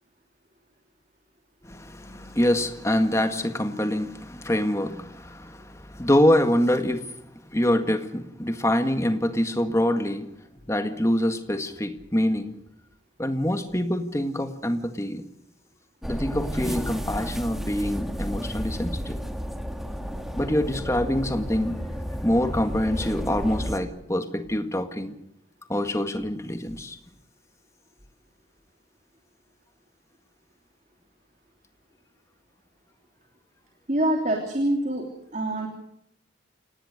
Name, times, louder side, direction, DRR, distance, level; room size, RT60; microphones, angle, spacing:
voice 1, 1.6-7.1 7.5-10.3 10.7-12.6 13.2-15.3 16.1-19.2 20.4-21.8 22.2-25.1 25.7-27.0, left 1 dB, 15° left, 7 dB, 1.8 m, -25 dB
sound 1, 16.0-23.8, equal, ahead, 1.7 m, -32 dB
voice 2, 33.9-35.7, right 1 dB, 40° right, 3 dB, 3.3 m, -25 dB
28.5 x 18.5 x 6.6 m, 0.74 s
head